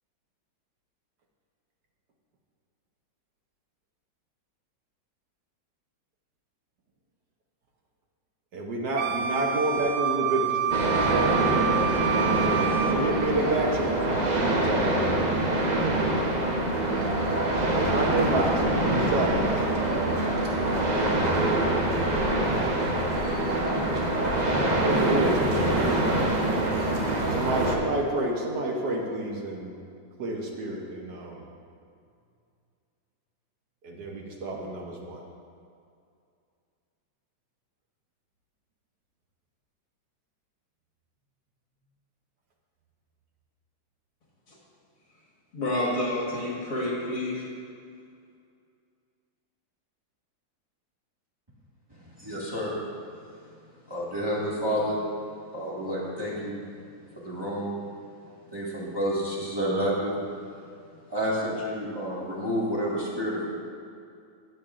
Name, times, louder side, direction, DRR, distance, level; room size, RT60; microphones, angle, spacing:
voice 1, 8.5-12.1 12.4-15.1 17.8-20.2 20.9-21.6 24.6-26.3 27.3-29.8 30.2-31.4 33.8-35.2, right 2 dB, 65° right, 0 dB, 1.4 m, -29 dB
Wind instrument woodwind instrument, 9.0-13.0, right 9 dB, 90° right, 0.7 m, -28 dB
sound 1, 10.7-27.8, right 1 dB, 45° right, 0.5 m, -25 dB
voice 2, 45.5-47.5, left 1 dB, 45° left, -4 dB, 2.0 m, -29 dB
voice 3, 52.2-52.7 53.9-55.0 55.5-56.6 57.1-57.7 58.5-60.1 61.1-63.5, equal, 15° right, -7 dB, 1.5 m, -29 dB
17.0 x 7.0 x 2.5 m, 2.4 s
omnidirectional pair, 2.0 m